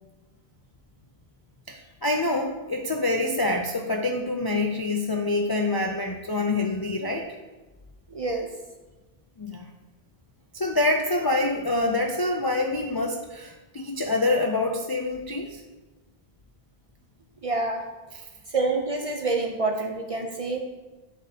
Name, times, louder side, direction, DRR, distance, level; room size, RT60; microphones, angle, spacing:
voice 1, 1.7-7.3 9.4-9.7 10.5-15.6 18.1-18.2, left 2 dB, 40° left, 1 dB, 0.3 m, -26 dB
voice 2, 8.1-8.5 17.4-17.8 18.5-20.6, right 3 dB, 45° right, 3 dB, 0.5 m, -27 dB
10.5 x 4.1 x 2.8 m, 1.2 s
omnidirectional pair, 1.1 m